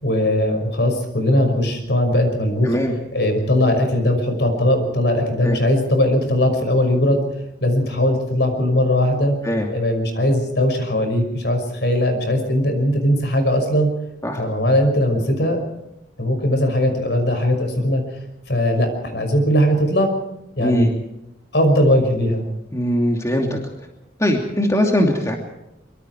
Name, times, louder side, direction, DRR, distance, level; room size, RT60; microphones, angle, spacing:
voice 1, 0.0-2.8 3.1-7.2 7.6-9.4 9.7-13.9 14.4-15.6 16.2-18.0 18.5-20.1 20.6-20.9 21.5-22.4, left 1 dB, 65° left, 6 dB, 5.8 m, -19 dB
voice 2, 22.7-23.6 24.2-25.3, equal, 15° left, 1 dB, 2.7 m, -20 dB
24.5 x 24.0 x 4.7 m, 0.89 s
head